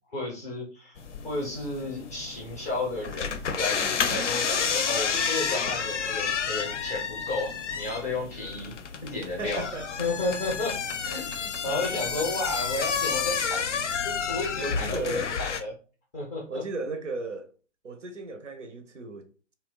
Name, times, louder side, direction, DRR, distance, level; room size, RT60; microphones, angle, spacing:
voice 1, 0.1-8.7 9.0-9.6 10.0-15.7 16.1-16.6, left 2 dB, 15° left, 0.4 m, -33 dB
sound 1, 1.0-15.6, left 6 dB, 80° left, 0.5 m, -30 dB
voice 2, 9.4-9.9 11.3-11.8 14.6-15.3 16.5-17.5 17.8-19.5, right 2 dB, 90° right, 0.5 m, -35 dB
2.8 x 2.0 x 2.4 m
figure-of-eight pair, 120°, 36 cm